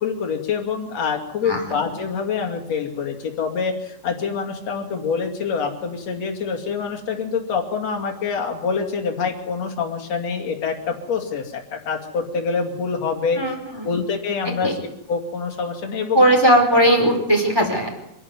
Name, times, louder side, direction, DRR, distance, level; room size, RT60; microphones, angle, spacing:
voice 1, 0.0-13.4 13.8-14.8 15.1-16.3, left 5 dB, 60° left, 3 dB, 3.7 m, -26 dB
voice 2, 13.4-13.9 14.6-14.7 16.1-17.9, right 1 dB, 5° right, 1 dB, 4.6 m, -17 dB
26.0 x 12.0 x 9.6 m, 0.88 s
omnidirectional pair, 3.3 m